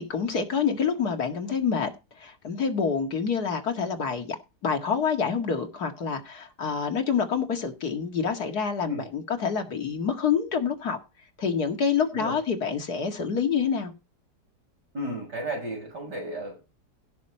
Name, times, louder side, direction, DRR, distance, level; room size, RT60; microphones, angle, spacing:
voice 1, 0.0-1.9 2.2-4.4 4.6-11.0 11.4-13.9, left 6 dB, 65° left, 2.4 m, -27 dB
voice 2, 14.9-16.8, right 1 dB, 85° right, 7.8 m, -34 dB
16.5 x 6.3 x 4.3 m
omnidirectional pair, 1.8 m